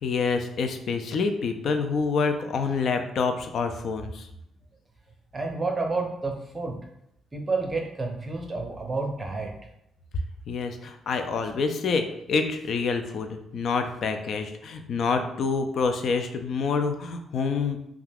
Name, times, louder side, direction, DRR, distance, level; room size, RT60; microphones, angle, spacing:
voice 1, 0.0-4.3 10.5-17.8, left 4 dB, 60° left, 7 dB, 0.4 m, -27 dB
voice 2, 5.3-6.8 7.3-9.5, right 3 dB, 25° right, 2 dB, 0.5 m, -30 dB
2.4 x 2.2 x 3.3 m, 0.78 s
cardioid pair, 90°, 0 cm